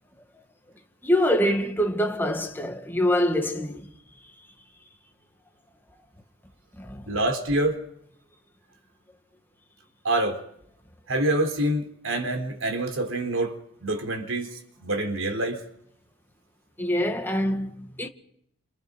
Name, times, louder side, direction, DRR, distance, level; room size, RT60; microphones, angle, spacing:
voice 1, 1.0-3.9 6.8-7.1 16.8-18.1, equal, 10° left, 1.9 m, -25 dB
voice 2, 7.1-7.8 10.0-10.4 11.1-13.5 13.8-14.5 14.8-15.6, right 1 dB, 80° right, 3.9 m, -26 dB
29.5 x 28.0 x 5.4 m
head